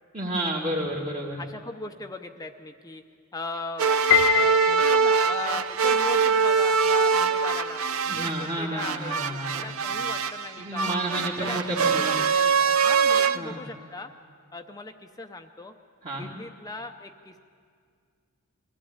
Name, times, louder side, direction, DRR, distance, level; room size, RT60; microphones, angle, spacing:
voice 1, 0.1-1.4 8.1-9.6 10.6-12.1 13.3-13.6 16.0-16.3, right 1 dB, 35° right, -5 dB, 1.9 m, -31 dB
voice 2, 1.4-3.0 3.3-4.1 4.3-11.0 11.4-11.6 11.9-14.1 14.5-15.7 16.1-17.4, left 2 dB, 15° left, 6 dB, 0.6 m, -38 dB
sound 1, 3.8-13.4, right 5 dB, 75° right, 0.6 m, -23 dB
Piano, 4.1-5.4, left 14 dB, 70° left, 0.5 m, -24 dB
22.5 x 15.0 x 8.7 m, 2.1 s
head